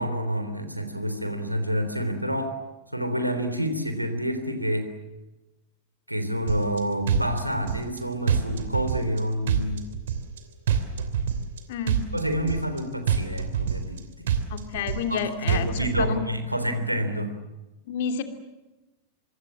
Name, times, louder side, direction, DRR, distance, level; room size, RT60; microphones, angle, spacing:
voice 1, 0.0-2.6 2.9-4.9 6.1-9.8 12.1-14.3 15.1-17.3, equal, 90° right, 8 dB, 3.5 m, -28 dB
sound 1, 6.5-6.8 7.1-8.0 8.3-9.2 9.5-10.4 10.7-11.6 11.9-12.8 13.1-14.0 14.3-15.2 15.5-16.1, right 8 dB, 60° right, 3.0 m, -26 dB
voice 2, 11.7-12.1 14.5-16.2 17.9-18.2, left 6 dB, 55° left, 7 dB, 2.9 m, -30 dB
25.5 x 25.0 x 7.4 m, 1.0 s
figure-of-eight pair, 90°, 0 cm